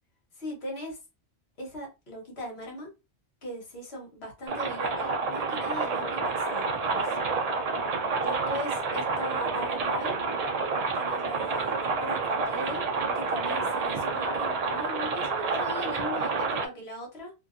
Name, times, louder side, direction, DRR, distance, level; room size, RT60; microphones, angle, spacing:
voice 1, 0.4-1.0 1.6-2.9 3.4-7.2 8.2-10.1 10.9-12.9 13.1-17.3, equal, 60° left, 1.2 m, -39 dB
sound 1, 4.5-16.7, right 4 dB, 60° right, 0.4 m, -29 dB
2.6 x 2.3 x 2.4 m
omnidirectional pair, 1.2 m